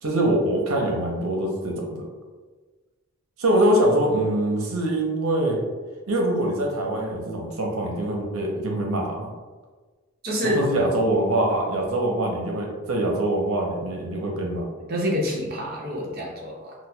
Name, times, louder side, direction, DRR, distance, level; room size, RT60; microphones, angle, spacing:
voice 1, 0.0-2.1 3.4-5.6 6.1-9.3 10.4-14.7, right 1 dB, 80° right, 0 dB, 0.7 m, -24 dB
voice 2, 10.2-10.6 14.9-16.7, equal, 45° right, -2 dB, 0.7 m, -27 dB
5.9 x 2.2 x 2.2 m, 1.3 s
head